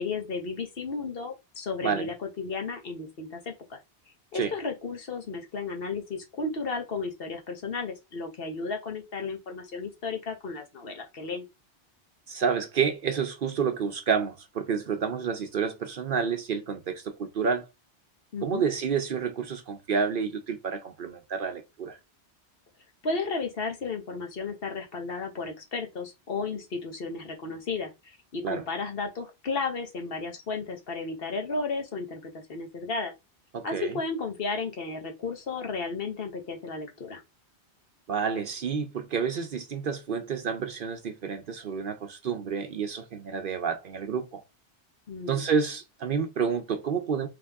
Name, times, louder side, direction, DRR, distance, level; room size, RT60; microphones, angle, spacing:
voice 1, 0.0-3.8 4.3-11.4 18.3-18.6 23.0-33.1 33.6-37.2 45.1-45.4, left 4 dB, 60° left, 1.1 m, -33 dB
voice 2, 12.3-17.6 18.4-22.0 28.4-28.6 33.5-33.9 38.1-44.4 45.3-47.3, right 6 dB, 55° right, 0.7 m, -29 dB
3.6 x 3.4 x 3.4 m
omnidirectional pair, 1.2 m